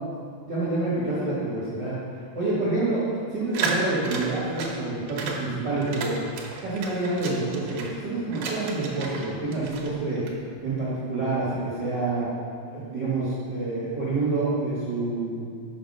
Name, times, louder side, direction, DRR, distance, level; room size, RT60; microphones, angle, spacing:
voice 1, 0.5-2.0 2.3-3.0 3.3-6.1 6.6-10.2 10.6-12.3 12.7-15.4, right 2 dB, 45° right, -10 dB, 1.7 m, -27 dB
sound 1, 3.5-4.8 5.1-5.4 5.8-7.9 8.3-9.3 9.5-10.3, right 4 dB, 80° right, 2.3 m, -33 dB
6.2 x 6.1 x 5.3 m, 2.2 s
omnidirectional pair, 3.6 m